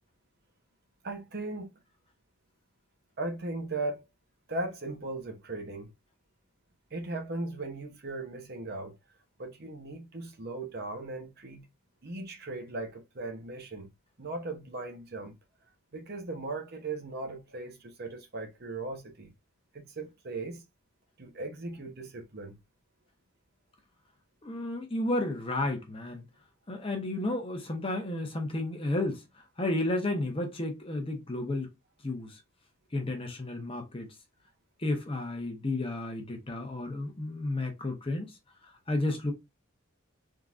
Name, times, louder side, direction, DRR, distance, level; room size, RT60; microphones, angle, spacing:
voice 1, 1.0-1.7 3.2-4.0 4.5-5.9 6.9-9.0 9.4-11.7 12.0-13.9 14.2-15.3 15.9-19.3 19.7-20.6 21.2-22.6, right 2 dB, 45° right, 0.8 m, -38 dB
voice 2, 24.4-26.2 26.7-29.2 29.6-31.7 32.0-32.4 32.9-34.1 34.8-38.3 38.9-39.3, left 2 dB, 25° left, 0.8 m, -32 dB
3.6 x 2.9 x 2.4 m
head